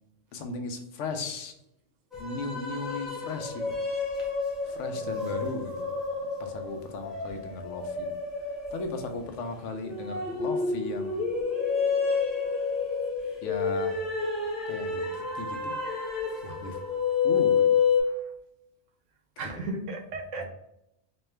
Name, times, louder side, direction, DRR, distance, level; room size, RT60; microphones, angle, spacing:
voice 1, 0.3-1.5 2.2-3.8 4.6-5.9 6.4-8.2 8.7-11.2 13.4-14.1 14.6-15.8 16.4-16.8 17.2-17.8 19.4-19.6 20.4-20.5, left 3 dB, 85° left, 6 dB, 0.9 m, -36 dB
sound 1, 2.1-18.0, left 5 dB, ahead, 1.0 m, -29 dB
voice 2, 19.4-20.5, right 2 dB, 85° right, 4 dB, 1.1 m, -35 dB
4.2 x 2.3 x 3.2 m, 0.83 s
omnidirectional pair, 1.2 m